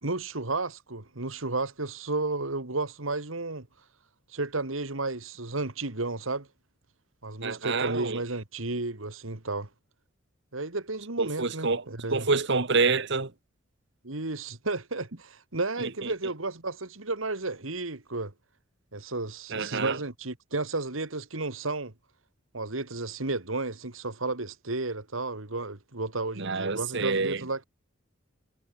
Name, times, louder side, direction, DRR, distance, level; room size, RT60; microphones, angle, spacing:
voice 1, 0.0-3.7 4.3-6.5 7.2-9.7 10.5-12.3 14.0-18.3 18.9-21.9 22.5-27.6, right 2 dB, 85° right, 2.4 m, -32 dB
voice 2, 7.4-8.2 11.2-11.8 12.1-13.3 15.8-16.1 19.5-20.0 26.4-27.4, right 4 dB, 65° right, 1.8 m, -27 dB
head